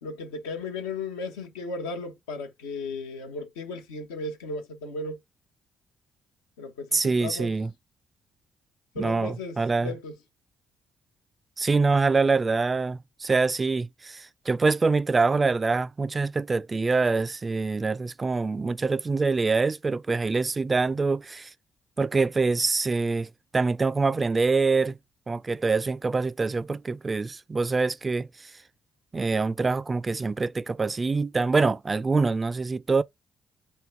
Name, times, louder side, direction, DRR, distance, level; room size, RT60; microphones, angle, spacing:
voice 1, 0.0-5.2 6.6-7.5 8.9-10.1, left 3 dB, 85° left, 0.8 m, -35 dB
voice 2, 6.9-7.7 9.0-9.9 11.6-21.5 22.0-25.0 25.3-28.3 29.1-33.0, right 4 dB, 35° right, 0.4 m, -25 dB
3.6 x 2.2 x 4.4 m
hypercardioid pair, 45°, 0 cm